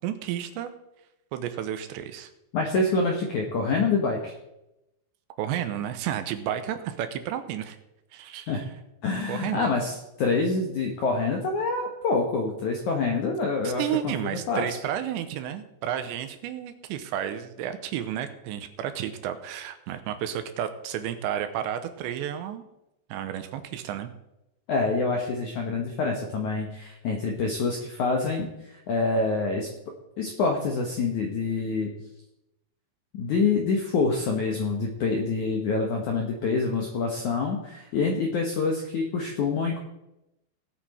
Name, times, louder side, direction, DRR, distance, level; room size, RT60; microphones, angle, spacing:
voice 1, 0.0-0.7 1.3-2.3 5.4-7.8 8.1-8.7 9.3-9.8 13.6-22.7 23.1-24.1, right 10 dB, 80° right, 9 dB, 3.0 m, -32 dB
voice 2, 2.5-4.3 8.5-8.7 9.0-14.8 24.7-29.7 30.2-31.9 33.1-39.8, left 4 dB, 70° left, 2 dB, 1.8 m, -26 dB
18.0 x 8.5 x 4.3 m, 0.89 s
omnidirectional pair, 5.3 m